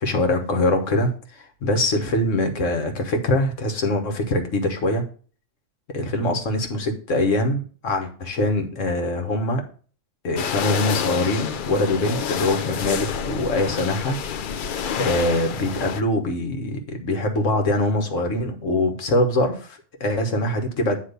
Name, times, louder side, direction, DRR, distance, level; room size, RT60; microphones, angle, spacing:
voice 1, 0.0-5.0 5.9-9.6 10.2-14.2 14.5-14.7 15.0-21.0, left 1 dB, 80° left, 4 dB, 1.7 m, -23 dB
sound 1, 10.4-16.0, left 8 dB, 60° left, 0.6 m, -28 dB
9.6 x 3.2 x 6.6 m, 0.41 s
omnidirectional pair, 1.3 m